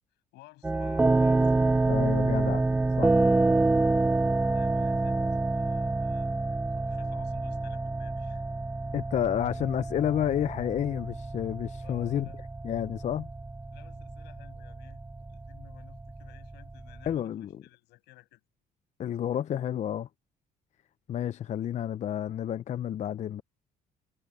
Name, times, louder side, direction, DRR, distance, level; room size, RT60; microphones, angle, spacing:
voice 1, 0.3-1.5 4.5-8.4 11.8-12.4 13.7-18.4 21.5-21.6, left 19 dB, 90° left, 7.3 m, -55 dB
sound 1, 0.6-17.1, right 2 dB, 10° right, 0.4 m, -28 dB
voice 2, 1.9-2.7 3.0-3.2 8.9-12.3 12.6-13.3 17.1-17.6 19.0-20.1 21.1-23.4, left 10 dB, 45° left, 0.5 m, -30 dB
cardioid pair, 110°, 17 cm